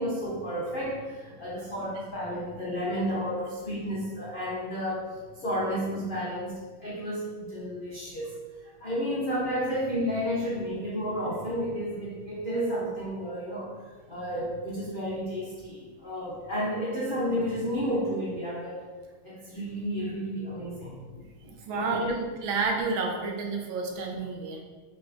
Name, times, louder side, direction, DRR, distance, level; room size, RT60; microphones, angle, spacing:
voice 1, 0.0-8.3 8.8-18.8 19.2-22.1, equal, 90° left, -8 dB, 0.4 m, -32 dB
voice 2, 21.7-24.6, right 4 dB, 75° right, 1 dB, 1.4 m, -30 dB
5.6 x 3.4 x 2.6 m, 1.4 s
omnidirectional pair, 2.3 m